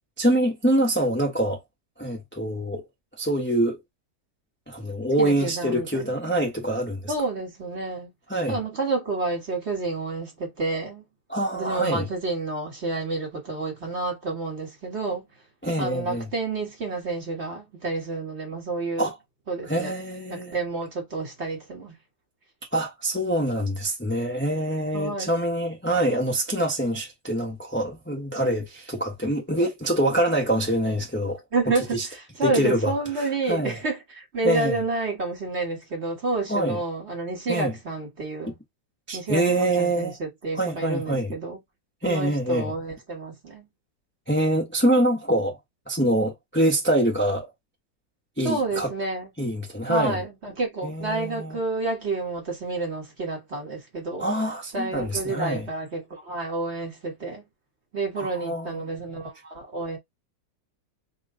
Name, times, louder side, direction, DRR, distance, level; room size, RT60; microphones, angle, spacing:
voice 1, 0.2-1.6 2.0-2.8 3.2-3.8 4.7-7.1 8.3-8.6 11.3-12.1 15.6-16.3 19.0-19.1 19.7-20.5 22.7-31.4 31.9-32.1 32.4-32.9 33.5-33.8 34.4-34.8 36.5-36.8 37.5-37.7 39.1-40.2 40.5-41.3 42.0-42.7 44.3-45.6 45.9-47.5 48.4-48.9 49.4-50.2 50.8-51.6 54.2-55.7 58.2-58.9, right 1 dB, 10° left, 0.8 m, -25 dB
voice 2, 5.2-6.1 7.1-8.1 8.5-11.0 11.5-15.2 15.8-19.1 19.5-19.9 20.3-21.9 24.9-25.3 31.5-38.5 39.1-41.6 42.0-43.7 48.4-49.3 49.9-54.2 54.7-57.4 57.9-60.0, right 3 dB, 40° right, 1.6 m, -29 dB
3.1 x 3.0 x 3.7 m
omnidirectional pair, 2.0 m